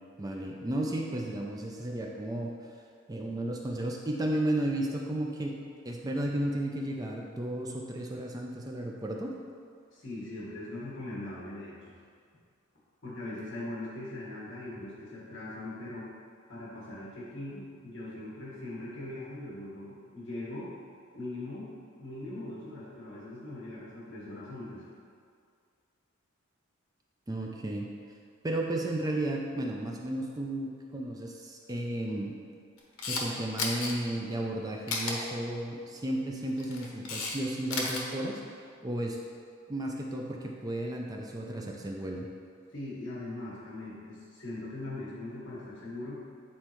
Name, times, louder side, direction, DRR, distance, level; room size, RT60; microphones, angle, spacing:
voice 1, 0.2-2.5 3.1-5.6 5.8-9.4 27.3-27.9 28.4-32.3 33.1-39.2 39.7-42.3, right 1 dB, 15° right, 0 dB, 0.4 m, -33 dB
voice 2, 9.9-11.9 13.0-16.1 16.5-20.7 21.1-21.7 22.0-24.8 42.7-46.2, left 2 dB, 60° left, -7 dB, 1.5 m, -40 dB
Camera, 32.8-33.2 33.6-33.9 34.9-35.1 36.4-37.4 37.6-38.0, left 4 dB, 80° left, 0.9 m, -32 dB
8.7 x 4.2 x 3.0 m, 2.2 s
head